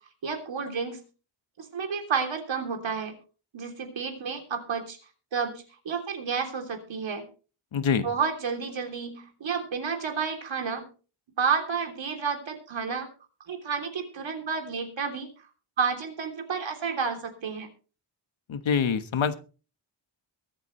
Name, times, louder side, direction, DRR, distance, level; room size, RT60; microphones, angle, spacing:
voice 1, 0.2-1.0 1.6-3.1 3.5-5.0 5.3-7.2 8.0-10.9 11.4-13.1 13.5-15.3 15.8-17.7, right 5 dB, 70° right, 4 dB, 3.3 m, -30 dB
voice 2, 7.7-8.1 18.5-19.4, left 6 dB, 75° left, 11 dB, 1.4 m, -25 dB
23.0 x 8.4 x 3.2 m, 0.36 s
wide cardioid pair, 150°, 47 cm